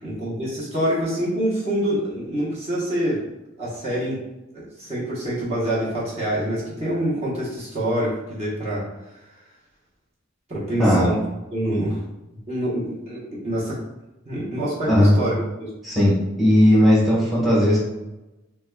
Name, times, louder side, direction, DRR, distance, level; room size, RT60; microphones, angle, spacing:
voice 1, 0.0-3.2 3.6-4.2 4.5-8.8 10.5-11.2 11.5-12.0 12.5-13.8 14.2-15.7, right 1 dB, 35° right, -7 dB, 0.9 m, -26 dB
voice 2, 15.8-17.8, equal, ahead, -7 dB, 1.0 m, -17 dB
4.5 x 2.2 x 2.2 m, 0.99 s
head